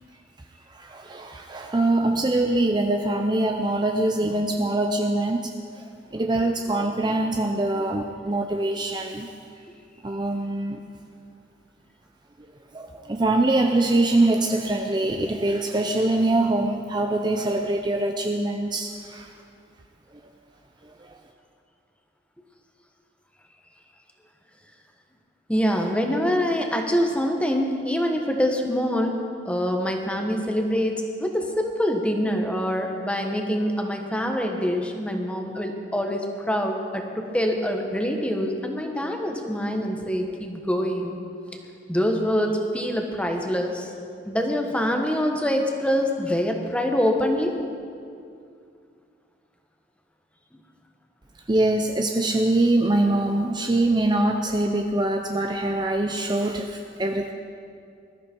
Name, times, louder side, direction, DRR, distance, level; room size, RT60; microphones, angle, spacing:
voice 1, 0.7-9.3 10.0-10.8 12.7-19.3 20.9-21.2 51.5-57.3, right 2 dB, 25° right, 4 dB, 0.6 m, -24 dB
voice 2, 25.5-29.2 29.4-41.2 41.9-43.9 44.2-47.5, equal, 5° left, 2 dB, 1.3 m, -25 dB
20.5 x 13.5 x 4.5 m, 2.4 s
head